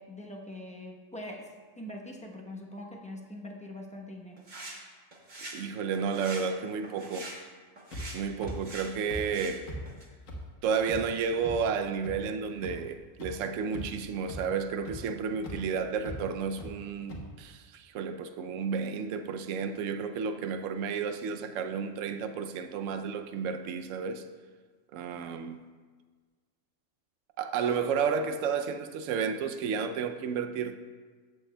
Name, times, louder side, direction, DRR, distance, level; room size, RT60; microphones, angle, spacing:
voice 1, 0.0-4.4, left 1 dB, 5° left, 0.7 m, -43 dB
sound 1, 4.4-4.8 5.1-5.6 5.9-6.5 6.8-7.4 7.8-8.2 8.5-9.6 9.9-10.1, right 2 dB, 35° right, 1.3 m, -43 dB
voice 2, 5.5-7.3 8.1-9.7 10.6-24.2 24.9-25.6 27.4-30.8, right 6 dB, 80° right, 0.9 m, -32 dB
sound 2, 7.9-8.0 8.4-8.5 9.1-9.2 9.7-9.8 10.3-10.4 10.9-11.0 11.4-11.5 12.0-12.1 12.6-12.7 13.2-13.3 13.7-14.0 14.3-14.4 14.9-15.0 15.4-15.6 16.0-16.2 16.6-16.7 17.1-17.2, equal, 85° left, 1.7 m, -39 dB
14.0 x 7.8 x 2.2 m
omnidirectional pair, 1.3 m